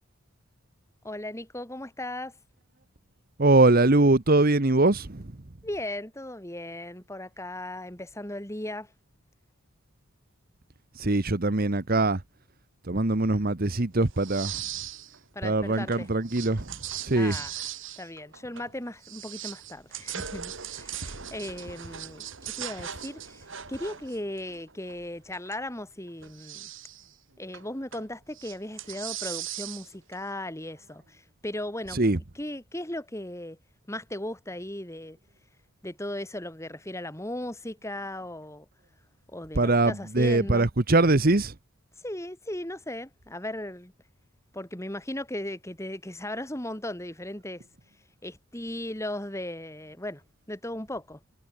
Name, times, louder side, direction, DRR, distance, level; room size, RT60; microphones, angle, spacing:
voice 1, 1.0-2.3 5.6-8.9 15.3-16.1 17.1-17.7 18.0-26.7 27.4-32.0 32.3-33.6 33.9-35.2 35.8-38.7 39.3-40.7 42.0-43.9 44.5-47.6 48.2-50.2 50.5-51.2, left 1 dB, 15° left, 2.5 m, -37 dB
voice 2, 3.4-5.3 11.0-12.2 12.9-14.6 15.4-16.7 17.0-17.4 31.9-32.2 39.6-41.5, right 2 dB, 45° right, 1.1 m, -22 dB
sound 1, 14.1-15.2 15.4-18.7 19.0-25.5 26.1-27.1 27.5-28.1 28.3-30.2, right 10 dB, 60° right, 2.6 m, -39 dB
head